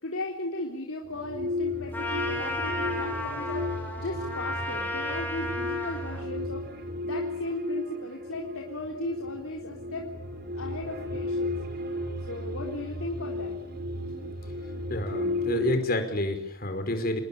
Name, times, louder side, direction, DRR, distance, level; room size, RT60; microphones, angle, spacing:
voice 1, 0.0-3.7 4.0-6.6 7.0-10.1 10.5-11.5 12.3-13.6, left 1 dB, 85° left, 0 dB, 3.9 m, -36 dB
sound 1, 1.0-15.8, left 2 dB, 50° right, 5.9 m, -34 dB
Trumpet, 1.9-6.3, left 1 dB, 10° left, 7.3 m, -34 dB
voice 2, 14.9-17.2, left 1 dB, 45° left, 7 dB, 5.1 m, -29 dB
28.5 x 20.5 x 8.6 m, 0.78 s
head